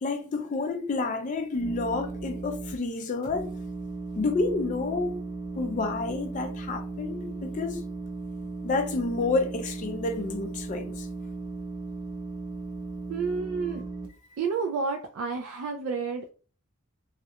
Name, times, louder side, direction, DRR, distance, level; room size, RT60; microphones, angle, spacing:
voice 1, 0.0-3.5 4.1-5.2 5.6-7.8 8.6-11.1 13.6-13.8, left 3 dB, 35° left, 0.3 m, -29 dB
sound 1, 1.5-2.7 3.2-14.1, right 3 dB, 25° right, 0.6 m, -36 dB
voice 2, 13.1-13.8 14.4-16.3, right 5 dB, 75° right, 0.3 m, -30 dB
2.4 x 2.1 x 2.7 m
head